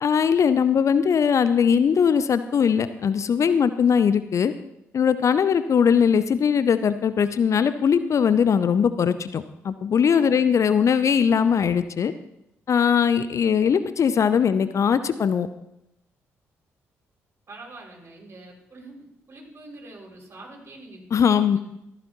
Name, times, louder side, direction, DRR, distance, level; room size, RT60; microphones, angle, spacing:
voice 1, 0.0-4.5 4.9-12.1 12.7-15.5 21.1-21.6, left 7 dB, 45° left, 13 dB, 0.6 m, -20 dB
voice 2, 10.1-10.4 17.5-21.6, right 2 dB, 35° right, -2 dB, 6.1 m, -44 dB
14.5 x 14.5 x 3.0 m, 0.85 s
figure-of-eight pair, 40°, 7 cm